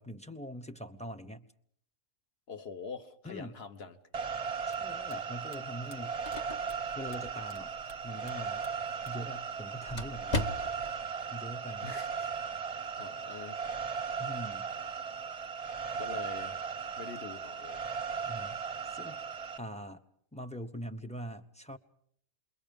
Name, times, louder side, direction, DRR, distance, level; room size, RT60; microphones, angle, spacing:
voice 1, 0.0-1.5 3.2-3.6 4.7-6.2 7.0-7.7 8.0-8.7 9.0-10.5 11.3-11.9 14.2-14.7 18.3-18.6 18.9-19.2 19.6-20.0 20.3-21.8, equal, 5° left, 0.8 m, -42 dB
voice 2, 2.5-4.0 11.8-12.3 13.0-13.7 14.1-14.2 15.9-16.7 17.0-17.8, left 5 dB, 50° left, 1.4 m, -44 dB
sound 1, 4.1-19.6, right 6 dB, 30° right, 0.9 m, -37 dB
sound 2, 4.7-7.6 7.9-9.4 9.6-10.4, left 2 dB, 85° left, 2.2 m, -58 dB
sound 3, 5.8-11.0, left 1 dB, 30° left, 1.2 m, -40 dB
28.0 x 22.5 x 5.3 m
omnidirectional pair, 1.5 m